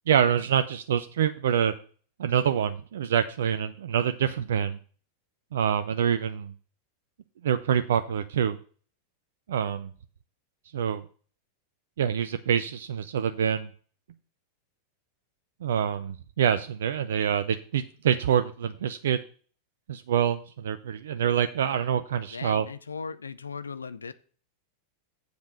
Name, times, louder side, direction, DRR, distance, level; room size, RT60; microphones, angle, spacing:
voice 1, 0.1-1.7 2.2-4.8 5.5-6.5 7.4-8.6 9.5-9.9 10.7-11.0 12.0-13.7 15.6-19.2 19.9-22.7, right 8 dB, 60° right, 0.5 m, -26 dB
voice 2, 22.3-24.1, left 5 dB, 75° left, 0.5 m, -37 dB
7.8 x 5.1 x 6.3 m
figure-of-eight pair, 90°, 0 cm